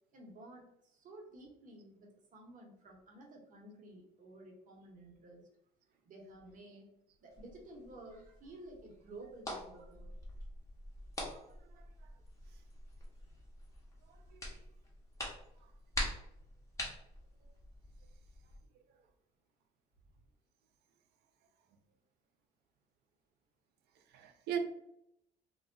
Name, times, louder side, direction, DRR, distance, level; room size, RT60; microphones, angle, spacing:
voice 1, 0.1-5.5 6.0-6.9 7.2-10.2 11.3-11.4, right 1 dB, 50° right, 0 dB, 0.9 m, -53 dB
sound 1, 7.3-18.6, left 1 dB, 20° left, 0.9 m, -45 dB
voice 2, 11.3-11.8 14.1-14.6 24.1-24.6, right 9 dB, 75° right, 6 dB, 0.5 m, -41 dB
2.2 x 2.0 x 3.6 m, 0.77 s
cardioid pair, 110°, 17 cm